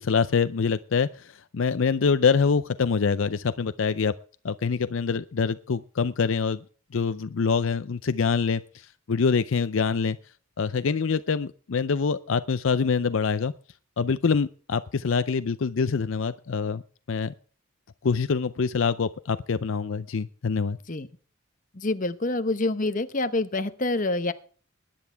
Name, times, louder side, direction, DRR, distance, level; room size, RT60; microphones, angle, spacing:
voice 1, 0.0-4.2 4.4-6.6 6.9-10.2 10.6-13.5 14.0-16.8 17.1-17.3 18.0-20.8, left 5 dB, 65° left, 13 dB, 0.5 m, -25 dB
voice 2, 21.7-24.3, left 2 dB, 40° left, 11 dB, 0.9 m, -26 dB
21.0 x 10.5 x 3.4 m, 0.42 s
head